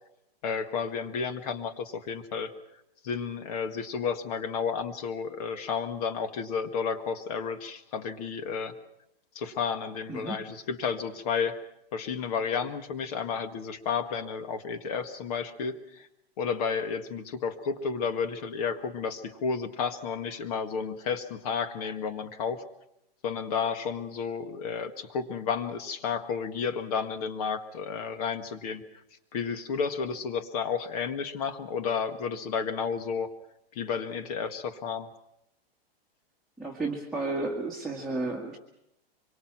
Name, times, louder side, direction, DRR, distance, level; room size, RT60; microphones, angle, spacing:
voice 1, 0.4-2.5 3.0-8.7 9.3-11.6 11.9-16.1 16.4-22.6 23.2-28.8 29.3-33.3 33.7-35.1, left 6 dB, 40° left, 9 dB, 1.8 m, -32 dB
voice 2, 10.1-10.4 36.6-38.6, right 2 dB, ahead, -2 dB, 1.7 m, -32 dB
25.5 x 23.5 x 6.0 m, 0.83 s
supercardioid pair, 175°, 30 cm